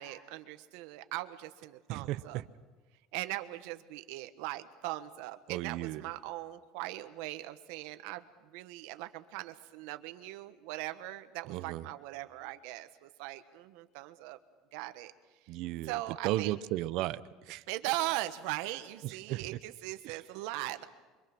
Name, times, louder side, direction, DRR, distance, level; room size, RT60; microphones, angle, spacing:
voice 1, 0.0-2.4 3.1-14.4 14.7-15.1 15.8-16.5 17.7-20.9, right 16 dB, 75° right, 9 dB, 1.4 m, -39 dB
voice 2, 1.9-2.5 5.5-6.0 11.5-11.8 15.5-16.0 16.2-17.6 19.0-19.5 20.0-20.2, right 16 dB, 60° right, 14 dB, 0.8 m, -35 dB
27.0 x 24.5 x 6.2 m, 1.3 s
cardioid pair, 150°, 0 cm